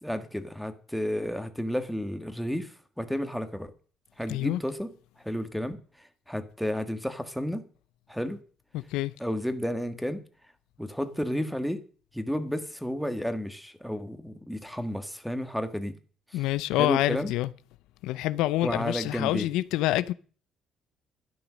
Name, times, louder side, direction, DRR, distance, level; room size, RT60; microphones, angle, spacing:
voice 1, 0.0-2.7 3.0-3.7 4.2-4.9 5.2-5.8 6.3-7.6 8.1-8.4 9.2-10.2 10.8-11.8 12.1-16.0 16.8-17.3 18.6-19.5, equal, ahead, 1.7 m, -31 dB
voice 2, 4.3-4.6 8.7-9.1 16.3-17.5 18.0-20.1, left 15 dB, 85° left, 0.6 m, -27 dB
12.5 x 10.0 x 6.4 m
cardioid pair, 100°, 0 cm